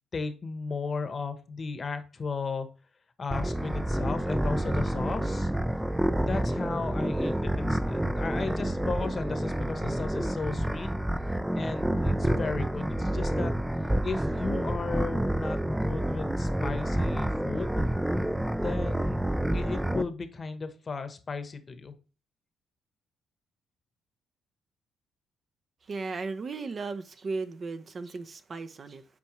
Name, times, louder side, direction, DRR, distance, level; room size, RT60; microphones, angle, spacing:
voice 1, 0.1-2.7 3.2-5.5 6.2-10.9 11.6-13.5 14.0-17.8 18.5-19.2 19.5-21.9, left 4 dB, 40° left, 1.0 m, -35 dB
sound 1, 3.3-20.0, right 1 dB, 5° right, 0.4 m, -28 dB
voice 2, 25.8-29.1, right 4 dB, 40° right, 0.7 m, -36 dB
8.6 x 4.5 x 3.0 m
cardioid pair, 90°, 0 cm